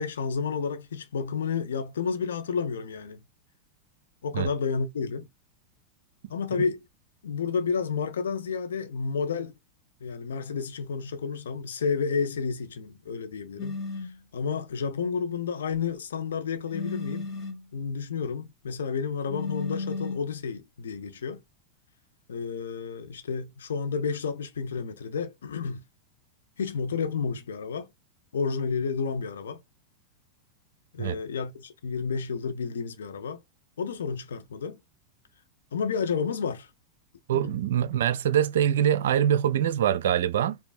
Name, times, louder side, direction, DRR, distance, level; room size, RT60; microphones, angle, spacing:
voice 1, 0.0-3.2 4.2-5.3 6.3-6.8 7.2-9.5 10.0-13.7 14.0-17.3 17.7-21.4 22.3-25.8 26.6-27.9 28.3-29.6 30.9-33.4 33.8-34.8 35.7-36.7 37.3-37.5, left 5 dB, 65° left, 0.7 m, -31 dB
sound 1, 13.6-14.2 16.7-17.7 19.3-20.3, left 3 dB, 30° left, 1.9 m, -34 dB
voice 2, 37.3-40.6, right 10 dB, 60° right, 0.4 m, -24 dB
5.2 x 2.3 x 2.3 m
figure-of-eight pair, 90°, 0 cm